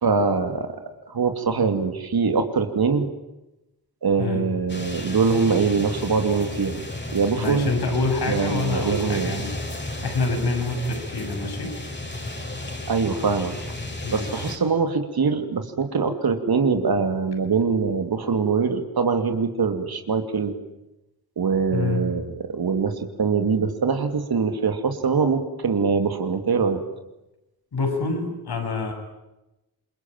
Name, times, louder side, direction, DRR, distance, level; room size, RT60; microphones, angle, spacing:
voice 1, 0.0-0.8 1.1-3.1 4.0-6.8 7.1-7.7 8.3-9.4 12.9-13.5 14.1-20.6 21.4-26.8, right 5 dB, 70° right, 7 dB, 2.8 m, -23 dB
sound 1, 4.7-14.6, left 1 dB, 25° left, 5.3 m, -33 dB
voice 2, 7.4-9.5 10.0-11.7 14.0-14.5 21.7-22.0 27.7-28.9, left 3 dB, 75° left, 5 dB, 7.1 m, -26 dB
27.5 x 22.5 x 9.1 m, 0.94 s
cardioid pair, 75°, 39 cm